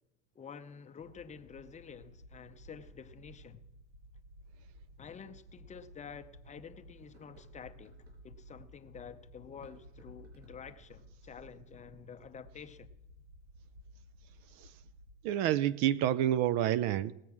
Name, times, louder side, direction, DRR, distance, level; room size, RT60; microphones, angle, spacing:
voice 1, 0.4-3.6 5.0-8.0 8.2-12.9, left 6 dB, 20° left, 0.6 m, -49 dB
sound 1, 1.0-15.1, equal, 90° right, 4.0 m, -56 dB
sound 2, 5.0-5.1 5.7-5.8 7.0-8.2 9.5-11.2, right 2 dB, 60° right, 5.8 m, -64 dB
voice 2, 15.2-17.1, right 12 dB, 45° right, 0.5 m, -29 dB
19.0 x 7.3 x 6.1 m
hypercardioid pair, 115°, 39 cm